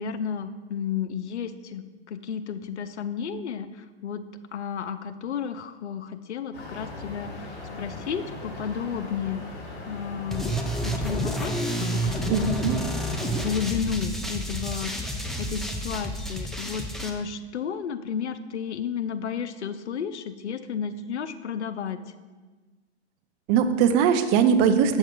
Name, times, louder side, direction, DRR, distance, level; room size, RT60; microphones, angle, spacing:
voice 1, 0.0-3.7 4.0-4.2 4.5-9.4 9.8-10.5 10.8-12.5 13.1-22.0, left 7 dB, 85° left, 12 dB, 0.7 m, -32 dB
sound 1, 6.5-13.5, left 2 dB, 30° left, 2.4 m, -39 dB
sound 2, 10.3-17.1, equal, ahead, 0.6 m, -30 dB
voice 2, 12.3-12.8 23.5-25.0, right 7 dB, 40° right, 9 dB, 0.7 m, -21 dB
7.3 x 6.7 x 4.5 m, 1.3 s
hypercardioid pair, 115°, 33 cm